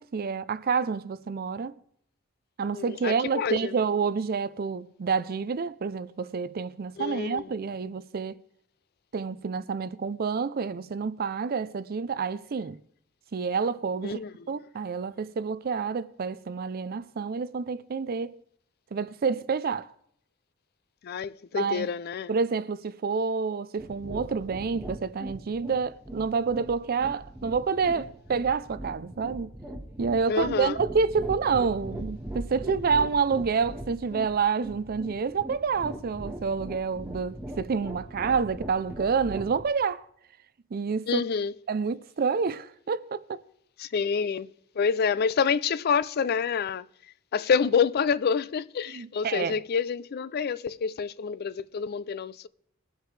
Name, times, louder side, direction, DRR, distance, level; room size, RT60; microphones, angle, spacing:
voice 1, 0.0-1.7 2.6-8.4 9.1-12.8 13.3-14.2 14.5-18.4 18.9-19.9 21.5-21.9 22.3-29.5 30.0-40.1 40.7-41.2 41.7-43.4 48.9-49.6, right 5 dB, 50° right, 0.4 m, -28 dB
voice 2, 2.7-3.8 7.0-7.5 14.0-14.5 21.0-22.3 30.3-30.8 41.1-41.5 43.8-44.5 44.8-46.9 47.3-52.5, left 6 dB, 50° left, 0.4 m, -27 dB
sound 1, 23.8-39.6, right 1 dB, 10° right, 1.3 m, -40 dB
21.5 x 8.1 x 3.3 m
head